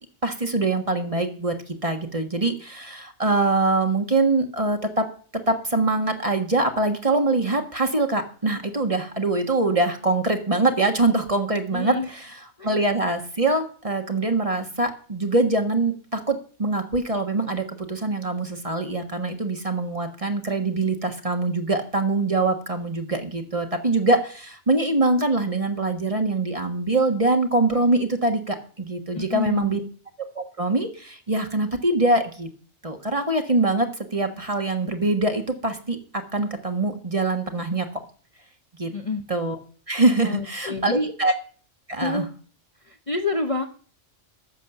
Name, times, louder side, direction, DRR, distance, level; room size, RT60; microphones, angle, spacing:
voice 1, 0.2-5.1 5.5-12.3 12.6-29.8 30.3-32.5 32.8-36.0 36.3-37.9 38.8-38.9 39.3-39.6 39.9-41.3 41.9-42.2, right 2 dB, 30° right, 5 dB, 1.5 m, -23 dB
voice 2, 11.7-12.1 12.6-12.7 29.1-29.8 38.9-39.2 40.2-41.1 42.0-42.3 42.8-43.7, left 3 dB, 30° left, 4 dB, 0.9 m, -28 dB
12.0 x 7.3 x 7.1 m, 0.43 s
omnidirectional pair, 1.3 m